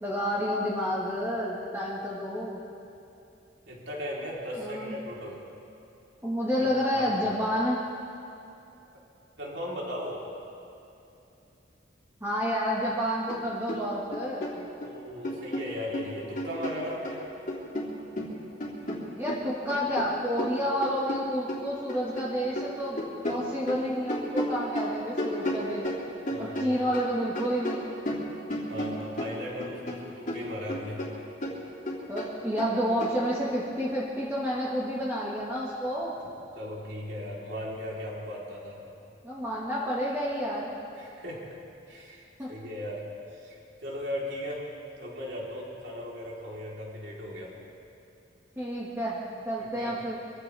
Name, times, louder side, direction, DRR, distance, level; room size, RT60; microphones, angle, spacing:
voice 1, 0.0-2.6 4.6-5.0 6.2-7.8 12.2-14.7 19.2-25.9 26.4-27.8 32.1-36.1 39.2-40.7 42.4-42.5 48.6-50.2, equal, 15° right, -7 dB, 1.7 m, -30 dB
voice 2, 3.7-5.4 6.9-7.2 9.4-10.2 14.8-17.2 26.3-26.8 28.7-31.0 36.6-38.8 41.0-41.5 41.9-43.0 43.3-44.6 45.0-47.5 49.8-50.0, equal, 70° right, -4 dB, 3.8 m, -37 dB
sound 1, 13.3-13.4 13.7-14.9 15.2-17.2 17.5-22.3 22.5-27.1 27.3-30.0 30.3-33.2, left 1 dB, 45° left, 2.6 m, -34 dB
25.0 x 15.0 x 3.5 m, 2.8 s
head